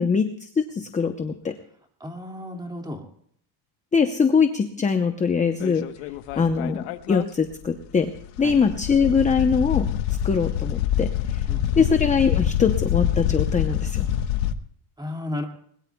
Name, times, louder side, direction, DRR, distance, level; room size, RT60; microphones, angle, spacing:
voice 1, 0.0-1.5 3.9-5.9 6.4-8.1 8.4-9.9 10.2-11.4 11.8-14.1, left 5 dB, 15° left, 7 dB, 0.8 m, -22 dB
voice 2, 2.0-3.0 6.3-6.5 8.4-8.6 11.5-11.9 15.0-15.5, left 1 dB, 10° right, 3 dB, 2.2 m, -34 dB
sound 1, 5.6-7.2 7.5-7.6 8.0-14.5, left 11 dB, 90° left, 1.2 m, -26 dB
21.5 x 20.5 x 2.3 m, 0.64 s
cardioid pair, 145°, 49 cm